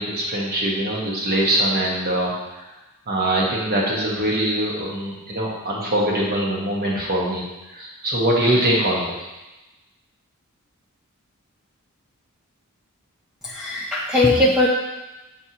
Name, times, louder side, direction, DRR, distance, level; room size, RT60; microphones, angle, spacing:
voice 1, 0.0-2.6 3.1-7.4 7.7-9.1, right 1 dB, 45° right, -3 dB, 1.3 m, -22 dB
voice 2, 13.4-14.7, left 2 dB, 5° right, -5 dB, 0.5 m, -19 dB
7.4 x 4.5 x 2.9 m, 1.1 s
head